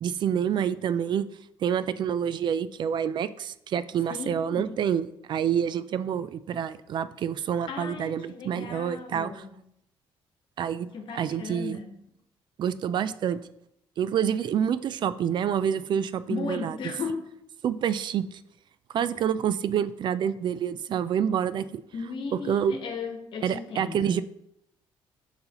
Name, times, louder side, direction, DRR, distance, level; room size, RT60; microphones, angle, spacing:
voice 1, 0.0-1.3 1.6-9.3 10.6-10.9 11.1-11.8 12.6-13.4 14.0-16.8 17.6-18.4 18.9-21.8 22.5-22.7 23.4-24.2, right 8 dB, 55° right, 15 dB, 0.4 m, -27 dB
voice 2, 4.1-4.8 7.7-9.6 10.9-11.9 16.3-17.3 21.9-24.2, left 4 dB, 60° left, 4 dB, 1.2 m, -36 dB
7.5 x 5.7 x 3.0 m, 0.77 s
cardioid pair, 105°, 9 cm